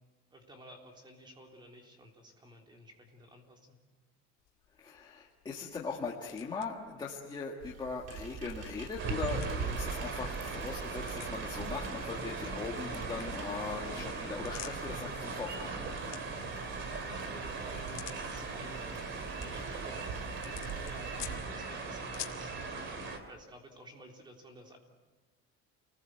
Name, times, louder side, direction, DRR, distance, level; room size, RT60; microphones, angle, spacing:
voice 1, 0.3-3.8 17.1-20.2 20.7-22.6 23.2-24.8, right 1 dB, 15° right, 2 dB, 3.6 m, -53 dB
sound 1, 4.4-22.6, left 16 dB, 70° left, 2.4 m, -53 dB
voice 2, 4.8-15.8, left 4 dB, 15° left, -3 dB, 1.9 m, -40 dB
sound 2, 7.6-21.4, right 6 dB, 60° right, 3.2 m, -44 dB
sound 3, 9.0-23.2, right 3 dB, 40° right, 3.1 m, -39 dB
29.0 x 20.0 x 8.0 m, 1.3 s
cardioid pair, 175°, 29 cm